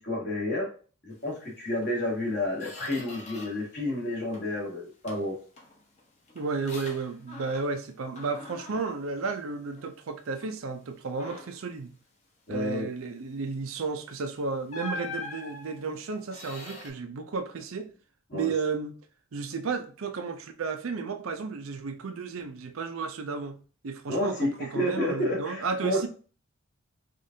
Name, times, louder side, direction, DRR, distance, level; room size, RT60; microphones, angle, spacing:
voice 1, 0.0-0.7 1.0-5.4 12.5-12.9 18.3-18.5 24.1-26.1, left 1 dB, 50° left, 1.5 m, -30 dB
Squeak, 1.8-1.9 2.3-3.7 4.0-4.6 5.1-7.9 8.1-10.0 10.4-10.6 11.1-11.7 13.8-14.0 14.7-16.9, left 2 dB, 30° left, 0.8 m, -43 dB
voice 2, 6.3-11.9 12.5-17.9 18.3-19.0 19.3-23.6 23.8-26.1, right 4 dB, 75° right, 0.5 m, -33 dB
4.9 x 2.5 x 2.7 m
head